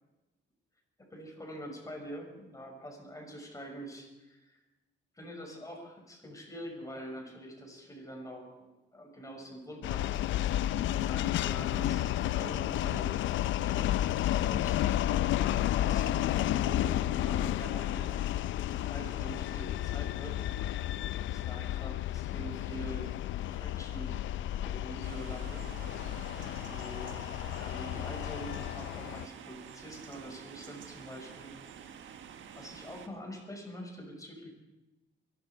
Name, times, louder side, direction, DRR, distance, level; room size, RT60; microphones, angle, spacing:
voice 1, 1.1-4.6 5.1-8.5 8.9-10.2 10.8-18.1 18.4-18.5 18.8-20.4 21.3-24.2 24.6-25.6 26.6-27.2 27.5-31.5 32.5-34.5, equal, 15° left, 1 dB, 6.0 m, -45 dB
sound 1, 9.8-29.3, left 13 dB, 75° left, 0.5 m, -32 dB
sound 2, 25.0-33.1, right 8 dB, 75° right, 1.5 m, -49 dB
23.5 x 12.0 x 4.6 m, 1.0 s
cardioid pair, 90°, 20 cm